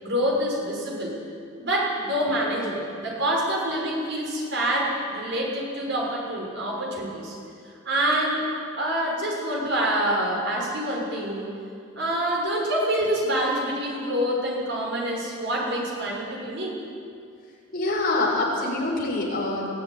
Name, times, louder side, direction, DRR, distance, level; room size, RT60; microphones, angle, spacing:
voice 1, 0.0-1.2 1.6-7.4 7.8-8.4 8.8-11.5 11.9-16.8, right 1 dB, 55° right, -2 dB, 6.2 m, -26 dB
voice 2, 17.7-19.7, left 2 dB, 45° left, -3 dB, 6.1 m, -25 dB
22.5 x 14.5 x 9.7 m, 2.4 s
head